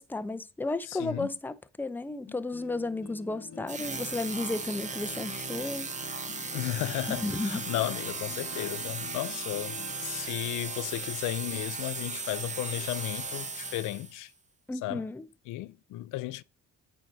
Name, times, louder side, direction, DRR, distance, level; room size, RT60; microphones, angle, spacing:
voice 1, 0.0-5.9 7.1-7.6 14.7-15.3, left 2 dB, 5° left, 0.5 m, -33 dB
voice 2, 0.9-1.3 6.5-9.8 10.0-14.3 14.8-15.0 15.5-16.4, left 16 dB, 85° left, 0.5 m, -34 dB
sound 1, 2.3-10.3, left 6 dB, 55° left, 0.9 m, -48 dB
sound 2, 3.7-14.2, right 4 dB, 25° right, 0.9 m, -37 dB
8.9 x 4.7 x 2.6 m
cardioid pair, 90°, 30 cm